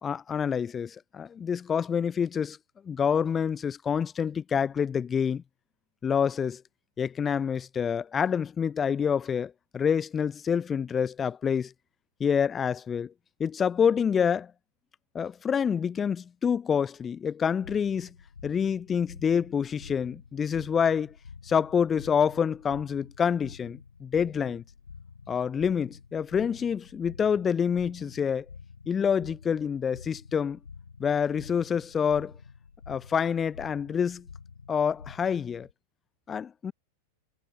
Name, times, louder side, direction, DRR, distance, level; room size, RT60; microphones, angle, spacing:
voice 1, 0.0-2.6 2.8-5.4 6.0-6.6 7.0-11.7 12.2-13.1 13.4-14.5 15.1-18.1 18.4-21.1 21.4-24.6 25.3-28.5 28.9-30.6 31.0-32.3 32.9-34.3 34.7-35.7 36.3-36.7, left 7 dB, 20° left, 0.5 m, -27 dB
sound 1, 17.6-35.7, left 5 dB, 75° left, 1.8 m, -49 dB
figure-of-eight pair, 90°, 0 cm